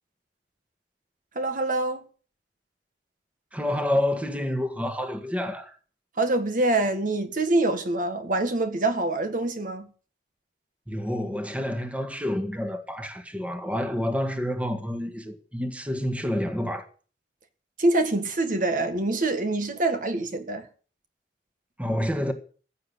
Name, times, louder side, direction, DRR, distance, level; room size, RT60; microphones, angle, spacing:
voice 1, 1.4-2.0 6.2-9.9 17.8-20.7, right 2 dB, 50° right, 1.8 m, -25 dB
voice 2, 3.5-5.8 10.9-16.9 21.8-22.3, left 1 dB, 10° right, 1.7 m, -28 dB
16.0 x 7.8 x 8.1 m
head